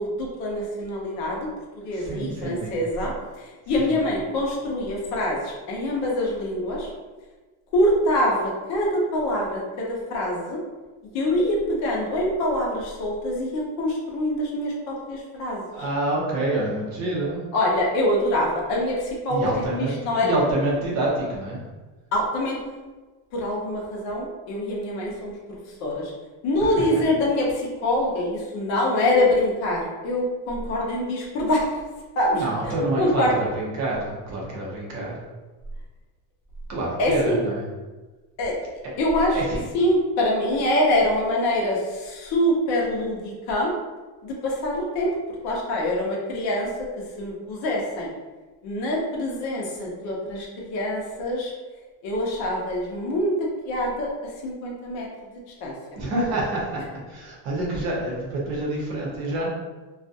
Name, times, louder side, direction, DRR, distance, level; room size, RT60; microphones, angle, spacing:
voice 1, 0.0-1.5 1.8-6.9 7.7-10.6 11.1-15.9 17.5-20.3 22.1-22.6 23.3-26.1 26.4-31.7 32.2-32.4 33.0-33.3 37.0-37.4 38.4-38.6 39.0-39.4 39.7-43.7 44.2-45.1 45.4-46.9 47.2-48.1 48.6-51.5 52.0-54.1 54.4-55.1 55.6-55.7, left 1 dB, 40° left, -2 dB, 0.6 m, -25 dB
voice 2, 1.9-2.8 3.8-4.0 15.7-17.4 19.3-20.0 20.2-21.6 26.6-26.7 32.3-35.2 36.7-37.6 39.3-39.6 56.0-59.5, right 1 dB, 40° right, -4 dB, 0.7 m, -27 dB
2.4 x 2.2 x 2.6 m, 1.2 s
cardioid pair, 175°, 41 cm